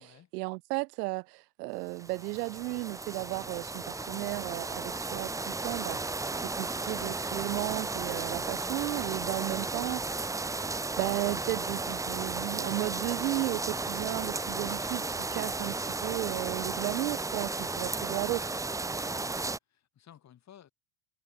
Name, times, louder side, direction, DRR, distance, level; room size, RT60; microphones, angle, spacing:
voice 1, 0.0-10.5 11.0-18.5, right 24 dB, 75° right, 0.9 m, -35 dB
sound 1, 1.9-19.6, right 3 dB, 5° right, 0.7 m, -34 dB
voice 2, 17.6-17.9 19.1-20.7, left 10 dB, 35° left, 3.8 m, -57 dB
supercardioid pair, 115°, 48 cm